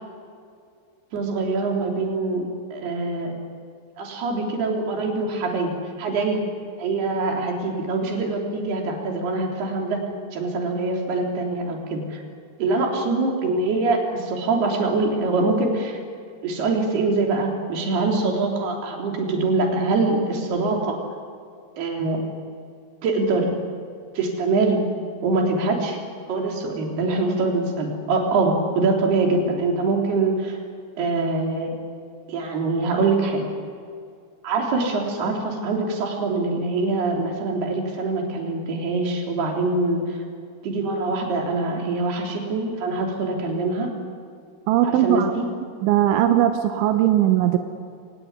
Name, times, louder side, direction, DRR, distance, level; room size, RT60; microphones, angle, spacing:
voice 1, 1.1-3.3 4.0-5.7 6.0-6.4 6.8-10.0 10.3-12.2 12.6-16.0 16.4-21.0 21.8-22.2 23.0-23.5 24.2-24.8 25.2-26.0 26.3-30.6 31.0-31.7 32.3-33.4 34.4-40.2 40.6-43.9 44.8-45.4, right 3 dB, 60° right, 1 dB, 5.3 m, -24 dB
voice 2, 44.7-45.3 45.8-47.6, right 11 dB, 90° right, 6 dB, 3.5 m, -19 dB
26.0 x 18.5 x 9.6 m, 2.3 s
omnidirectional pair, 5.2 m